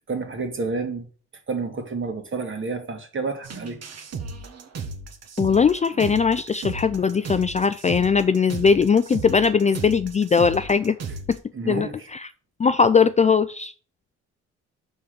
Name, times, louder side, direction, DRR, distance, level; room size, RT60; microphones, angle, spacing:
voice 1, 0.1-1.1 1.5-3.8 11.5-12.1, right 4 dB, 40° right, 2.0 m, -29 dB
sound 1, 3.4-11.4, right 4 dB, 55° right, 1.4 m, -35 dB
voice 2, 5.4-11.0 11.3-11.4 11.7-12.3 12.6-13.7, left 5 dB, 25° left, 0.4 m, -20 dB
5.9 x 5.2 x 6.6 m
cardioid pair, 90°, 30 cm